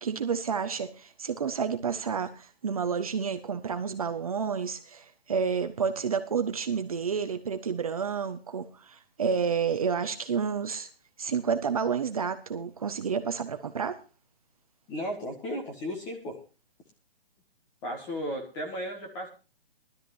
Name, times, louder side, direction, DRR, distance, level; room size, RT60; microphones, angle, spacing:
voice 1, 0.0-10.9 11.2-14.0, right 6 dB, 35° right, 8 dB, 1.1 m, -30 dB
voice 2, 14.9-16.4 17.8-19.3, equal, 10° left, 2 dB, 1.6 m, -35 dB
20.0 x 12.5 x 2.6 m, 0.32 s
hypercardioid pair, 175°, 30 cm